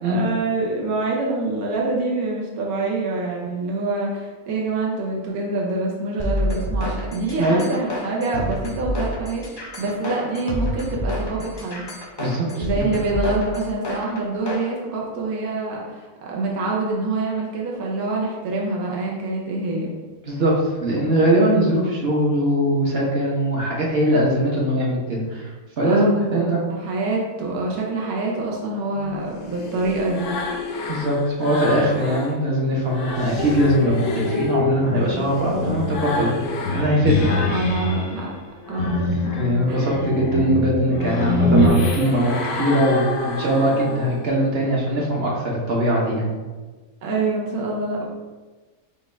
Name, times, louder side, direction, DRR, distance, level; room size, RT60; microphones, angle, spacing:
voice 1, 0.0-11.9 12.6-19.9 25.9-30.3 35.6-35.8 37.3-38.3 38.7-39.8 47.0-48.1, right 2 dB, 75° right, -3 dB, 1.2 m, -26 dB
sound 1, 6.2-14.7, equal, 35° left, 0.4 m, -28 dB
voice 2, 12.2-13.0 20.2-25.5 25.8-26.6 30.9-36.5 36.7-37.4 39.4-46.4, right 1 dB, 50° right, -3 dB, 1.0 m, -21 dB
sound 2, 28.9-32.4 32.7-38.1 38.5-44.4, left 3 dB, 90° left, 1.2 m, -32 dB
sound 3, 33.4-38.1 38.8-41.7, left 1 dB, 65° left, 0.9 m, -23 dB
5.1 x 2.3 x 4.3 m, 1.3 s
omnidirectional pair, 1.6 m